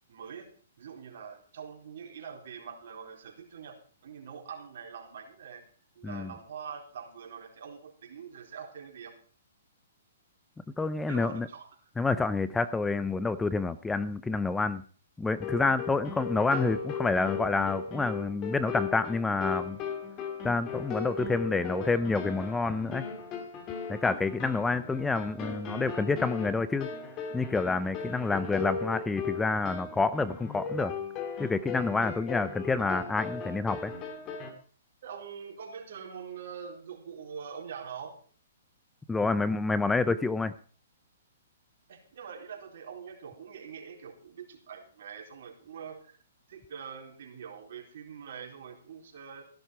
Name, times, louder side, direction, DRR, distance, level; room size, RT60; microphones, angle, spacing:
voice 1, 0.1-0.5 0.8-5.6 6.0-9.2 11.1-11.7 35.0-38.2 41.9-46.2 46.5-49.4, right 7 dB, 65° right, 2 dB, 4.1 m, -44 dB
voice 2, 10.8-11.5 12.0-14.8 15.2-19.8 20.4-23.1 23.9-26.9 27.3-30.9 31.4-33.9 39.1-40.5, left 3 dB, 10° left, 15 dB, 0.5 m, -28 dB
sound 1, 15.3-34.5, left 5 dB, 30° left, 2.6 m, -37 dB
15.5 x 11.0 x 4.6 m, 0.41 s
hypercardioid pair, 145°, 0 cm